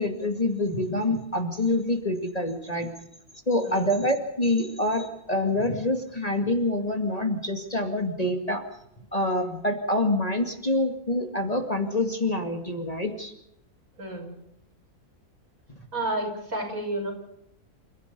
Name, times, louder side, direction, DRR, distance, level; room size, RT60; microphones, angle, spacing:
voice 1, 0.0-2.9 3.5-8.6 9.1-13.3, left 1 dB, 25° left, 5 dB, 2.3 m, -26 dB
voice 2, 14.0-14.3 15.9-17.1, right 1 dB, 60° right, 2 dB, 6.7 m, -31 dB
29.0 x 15.0 x 6.9 m, 0.79 s
omnidirectional pair, 1.6 m